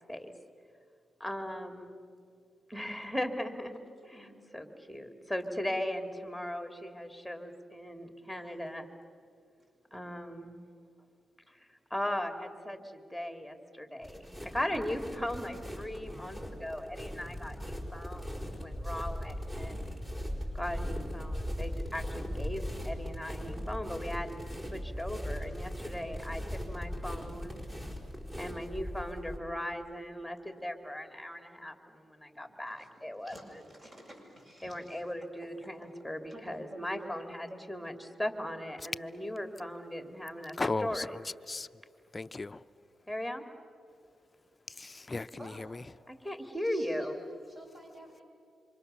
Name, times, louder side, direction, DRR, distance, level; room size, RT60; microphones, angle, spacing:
voice 1, 1.2-2.0 2.7-4.3 4.5-8.9 9.9-10.6 11.5-19.9 20.5-24.4 24.7-27.6 28.4-33.6 34.6-41.2 43.1-43.5 46.1-47.2, left 1 dB, ahead, 2.7 m, -38 dB
voice 2, 4.0-4.5 21.7-21.8 32.3-32.4 32.7-35.0 36.3-37.7 38.3-38.6 45.1-45.6 46.6-47.1 47.5-48.2, equal, 40° right, 7.4 m, -51 dB
sound 1, 14.0-29.4, equal, 20° right, 4.8 m, -39 dB
voice 3, 40.6-41.7 42.1-42.6 44.7-45.8, left 3 dB, 30° left, 0.7 m, -36 dB
27.0 x 25.5 x 7.0 m
cardioid pair, 70°, 0 cm